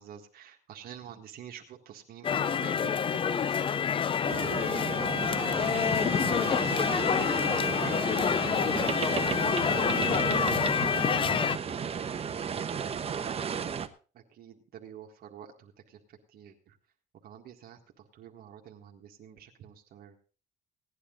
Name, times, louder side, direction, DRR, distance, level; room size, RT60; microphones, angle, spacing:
voice 1, 0.0-3.6 14.1-16.8 17.2-20.2, right 9 dB, 65° right, 2 dB, 1.8 m, -48 dB
sound 1, 2.2-11.6, left 7 dB, 30° left, 0.5 m, -27 dB
sound 2, 4.3-13.9, right 7 dB, 35° right, 1.1 m, -34 dB
voice 2, 4.5-4.6, equal, 5° right, 1 dB, 2.9 m, -51 dB
17.0 x 10.0 x 3.9 m, 0.37 s
cardioid pair, 110°, 17 cm